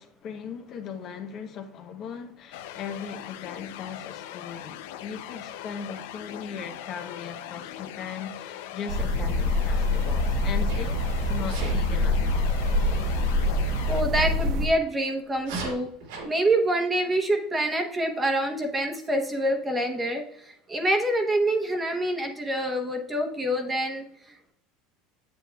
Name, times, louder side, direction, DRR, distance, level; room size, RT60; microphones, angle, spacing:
voice 1, 0.0-11.0 11.3-12.5, left 6 dB, 45° left, 0.8 m, -38 dB
sound 1, 2.5-14.0, left 12 dB, 80° left, 0.5 m, -40 dB
sound 2, 8.9-14.7, left 2 dB, 65° right, 1.0 m, -25 dB
Sneeze, 10.7-11.0 11.5-11.8 14.3-14.5 15.4-16.3, right 3 dB, 80° right, 2.7 m, -36 dB
voice 2, 13.9-15.9 16.2-24.5, right 1 dB, 15° right, 1.0 m, -26 dB
7.9 x 7.9 x 2.3 m
supercardioid pair, 135°, 0 cm